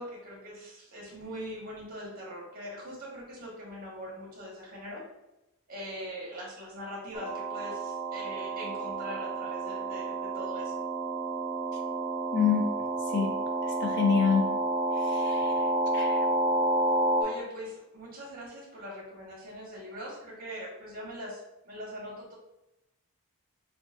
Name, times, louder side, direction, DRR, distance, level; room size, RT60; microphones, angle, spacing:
voice 1, 0.0-5.0 5.7-10.8 17.2-22.3, equal, 40° right, -4 dB, 1.3 m, -42 dB
sound 1, 7.1-17.2, right 2 dB, 25° right, 0.6 m, -30 dB
voice 2, 12.3-12.7 13.1-13.4 13.6-14.6 14.9-15.6 15.9-16.2, left 6 dB, 50° left, 2 dB, 0.6 m, -27 dB
6.0 x 2.4 x 2.5 m, 0.93 s
head